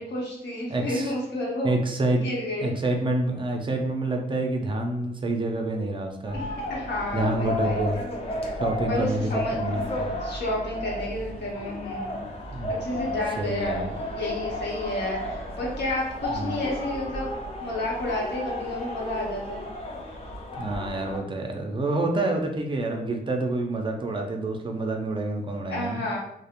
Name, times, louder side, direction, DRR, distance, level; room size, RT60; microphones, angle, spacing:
voice 1, 0.0-1.7 2.1-2.7 6.3-7.8 8.9-9.6 10.2-12.2 12.8-13.8 14.1-19.6 25.7-26.2, left 1 dB, 85° left, -3 dB, 0.8 m, -31 dB
voice 2, 0.7-1.1 1.6-2.2 2.6-6.4 7.1-8.0 8.6-10.1 12.5-13.9 16.3-16.6 20.6-26.0, right 2 dB, 30° right, 2 dB, 0.4 m, -28 dB
sound 1, 6.3-21.2, left 1 dB, 35° left, 0.5 m, -33 dB
2.4 x 2.0 x 2.8 m, 0.80 s
cardioid pair, 105°, 17 cm